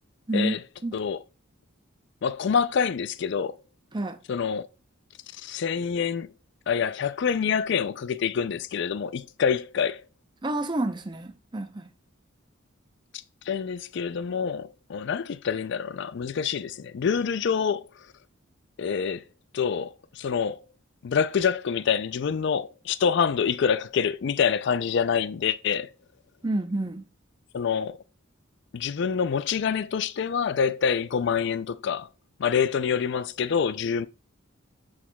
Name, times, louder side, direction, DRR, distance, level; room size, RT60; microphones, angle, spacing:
voice 1, 2.2-3.6 4.3-4.7 5.4-6.3 6.7-10.0 13.5-17.9 18.8-19.2 19.5-20.6 21.0-25.9 27.5-28.0 28.7-32.1 32.4-34.1, left 6 dB, 55° left, 0.4 m, -26 dB
voice 2, 10.4-11.9 26.4-27.1, right 1 dB, 20° right, 0.6 m, -29 dB
7.4 x 6.3 x 2.3 m
head